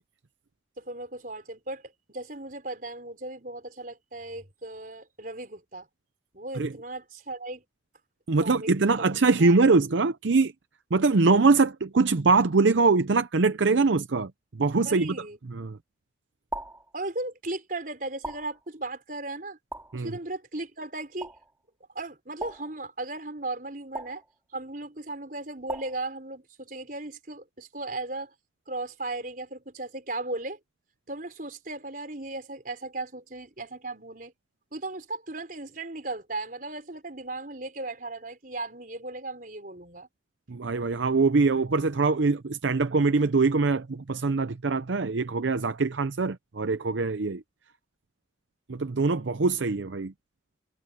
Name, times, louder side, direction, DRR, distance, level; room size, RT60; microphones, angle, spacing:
voice 1, 0.8-1.8 2.1-5.9 6.3-7.6 8.4-8.7 9.0-9.1 9.4-9.6 14.9-15.4 16.9-19.6 19.9-21.3 22.0-24.2 24.5-28.3 28.7-30.6 31.1-34.3 34.7-40.1, right 2 dB, 45° right, 5.1 m, -36 dB
voice 2, 8.3-10.5 10.9-14.3 14.6-15.2 15.5-15.8 19.9-20.2 40.5-47.4 48.7-50.1, right 3 dB, 75° right, 0.7 m, -23 dB
sound 1, 16.5-16.9 18.2-18.6 19.7-20.1 21.2-21.5 22.4-22.8 23.9-24.3 25.7-26.1, right 2 dB, 10° right, 4.1 m, -38 dB
head